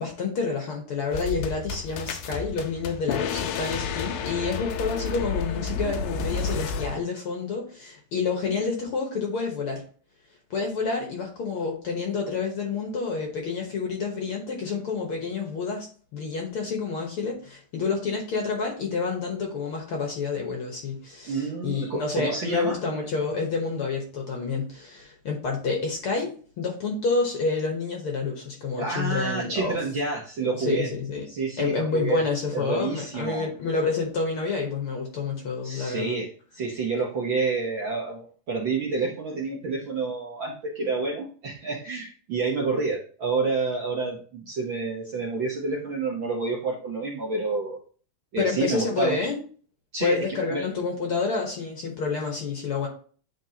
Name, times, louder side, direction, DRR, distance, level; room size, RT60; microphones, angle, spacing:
voice 1, 0.0-9.8 10.5-26.3 26.6-29.8 30.6-31.3 31.6-36.2 48.4-49.4 50.0-52.9, left 4 dB, 60° left, 1 dB, 1.6 m, -28 dB
sound 1, 1.1-7.0, left 5 dB, 85° left, 2.2 m, -31 dB
voice 2, 21.3-22.8 28.8-30.9 31.3-32.2 32.5-33.5 35.6-36.3 36.5-47.8 48.3-49.2 49.9-50.6, right 4 dB, 60° right, -3 dB, 1.3 m, -29 dB
10.0 x 3.6 x 2.8 m, 0.42 s
omnidirectional pair, 3.5 m